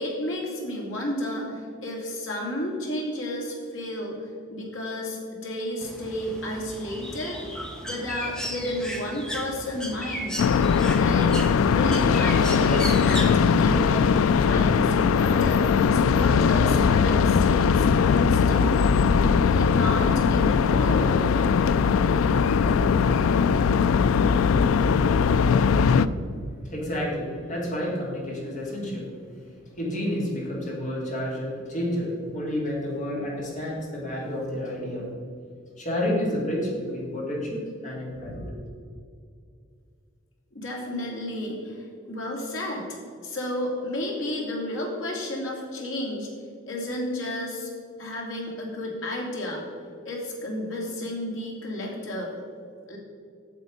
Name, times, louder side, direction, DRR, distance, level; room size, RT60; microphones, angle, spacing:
voice 1, 0.0-7.4 7.8-10.4 10.9-14.1 14.4-15.6 15.9-18.9 19.5-21.2 40.5-42.9 43.2-46.3 46.6-47.7 48.0-49.6 50.0-52.3 52.9-53.0, left 1 dB, 65° left, -2 dB, 2.5 m, -32 dB
Bird, 5.8-13.9, equal, 5° left, 0.9 m, -36 dB
sound 1, 10.4-26.1, left 6 dB, 90° left, 0.3 m, -20 dB
voice 2, 26.6-29.1 29.4-35.1 35.8-38.5, left 1 dB, 40° left, -3 dB, 2.5 m, -30 dB
8.3 x 7.1 x 5.2 m, 2.3 s
head